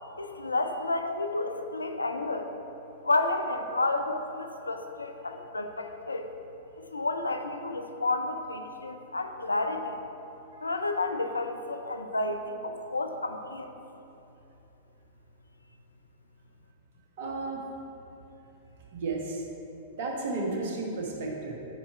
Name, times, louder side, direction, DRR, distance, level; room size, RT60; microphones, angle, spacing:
voice 1, 0.2-2.5 3.0-6.3 6.8-10.0 10.6-13.7, left 2 dB, 85° left, 6 dB, 0.5 m, -31 dB
voice 2, 17.2-17.6 18.9-19.4 20.0-21.6, right 3 dB, 55° right, -1 dB, 1.4 m, -33 dB
8.8 x 4.7 x 4.4 m, 2.9 s
figure-of-eight pair, 100°, 0 cm